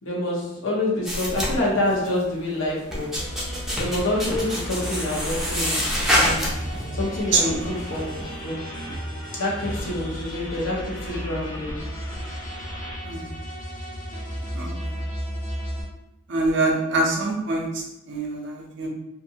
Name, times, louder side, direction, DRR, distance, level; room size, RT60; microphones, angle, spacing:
voice 1, 0.0-3.2 3.8-6.5 6.9-8.7 9.3-11.9, left 1 dB, 65° left, -4 dB, 0.9 m, -27 dB
sound 1, 1.1-2.2 2.7-6.8 7.2-7.7, equal, ahead, 0.6 m, -26 dB
sound 2, 3.2-15.8, equal, 40° left, 0.8 m, -35 dB
sound 3, 3.7-13.0, equal, 85° left, 1.2 m, -37 dB
voice 2, 7.3-7.7 13.0-13.3 14.5-14.9 16.3-18.9, right 2 dB, 60° right, 0 dB, 0.6 m, -25 dB
2.6 x 2.5 x 2.7 m, 0.87 s
head